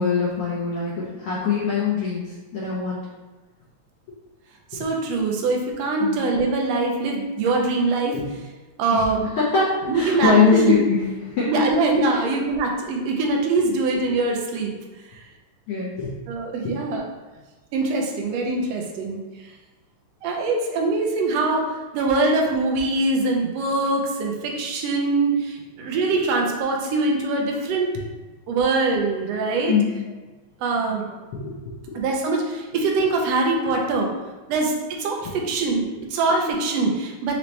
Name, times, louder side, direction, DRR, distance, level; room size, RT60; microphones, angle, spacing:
voice 1, 0.0-2.2 2.5-3.0 6.0-6.2 8.1-8.2 8.9-9.0 9.4-11.5 12.1-12.2 15.7-16.1 29.7-29.9 30.8-30.9 31.3-31.5 31.9-32.0, left 5 dB, 75° left, -6 dB, 1.3 m, -22 dB
voice 2, 4.7-8.2 8.8-9.2 9.9-10.8 11.5-14.7 15.1-15.2 16.3-17.0 17.7-19.5 20.2-27.9 28.5-29.7 30.6-31.2 31.9-34.1 34.5-37.4, right 3 dB, 75° right, 0 dB, 1.6 m, -23 dB
5.2 x 2.8 x 3.2 m, 1.2 s
omnidirectional pair, 3.3 m